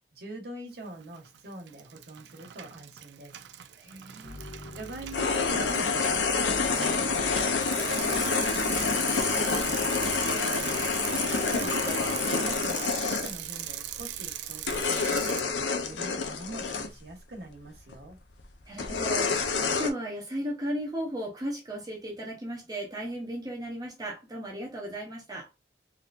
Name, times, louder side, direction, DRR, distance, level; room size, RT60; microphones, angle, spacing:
voice 1, 0.0-3.4 4.3-4.4 4.7-10.2 11.1-15.5 15.8-18.2, right 1 dB, 60° right, 1.4 m, -43 dB
Bicycle, 1.0-1.4 1.7-15.4, right 12 dB, 75° right, 0.4 m, -38 dB
voice 2, 3.8-4.4 18.7-25.5, equal, 20° right, 0.9 m, -36 dB
sound 1, 4.2-12.3, left 2 dB, 45° left, 0.5 m, -44 dB
sound 2, 5.1-13.3 14.0-14.3 14.7-16.9 17.9-18.0 18.8-19.9, left 4 dB, 85° left, 0.7 m, -28 dB
3.9 x 2.8 x 2.6 m
head